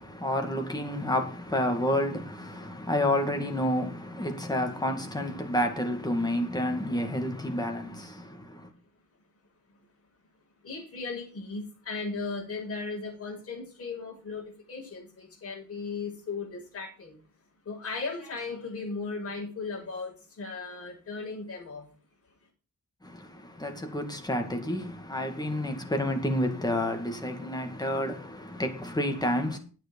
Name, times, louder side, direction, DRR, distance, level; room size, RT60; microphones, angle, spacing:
voice 1, 0.0-8.7 23.0-29.6, left 1 dB, 10° left, 2.2 m, -30 dB
voice 2, 10.6-17.2 17.6-21.8, left 4 dB, 45° left, 6.7 m, -37 dB
9.7 x 9.2 x 5.4 m
wide cardioid pair, 145°, 31 cm